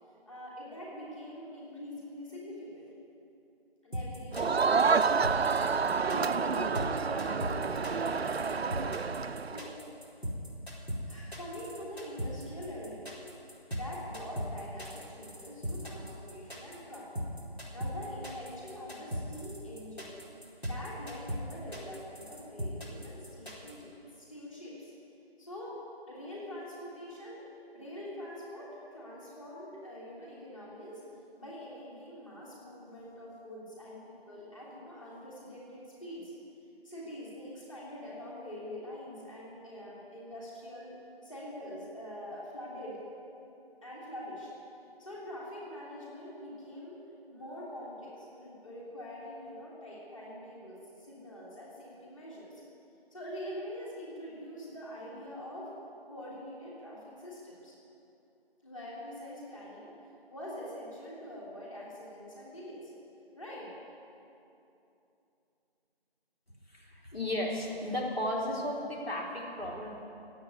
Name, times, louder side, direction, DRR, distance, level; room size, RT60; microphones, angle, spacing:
voice 1, 0.3-2.9 3.8-9.8 11.1-13.3 13.7-17.1 17.7-20.2 20.6-24.9 25.4-25.7 26.1-27.5 27.7-31.0 31.4-36.3 36.8-41.0 41.2-43.0 43.8-44.5 45.0-47.0 47.3-52.6 53.1-55.7 56.1-57.8 58.6-59.9 60.3-62.9 63.3-63.7, equal, 30° left, -6 dB, 3.1 m, -44 dB
sound 1, 3.9-23.7, equal, 90° left, 4.4 m, -38 dB
Crowd, 4.3-9.7, right 5 dB, 85° right, 0.5 m, -29 dB
voice 2, 66.7-70.0, left 1 dB, 70° left, -3 dB, 3.5 m, -34 dB
16.5 x 8.4 x 9.6 m, 2.8 s
figure-of-eight pair, 165°, 31 cm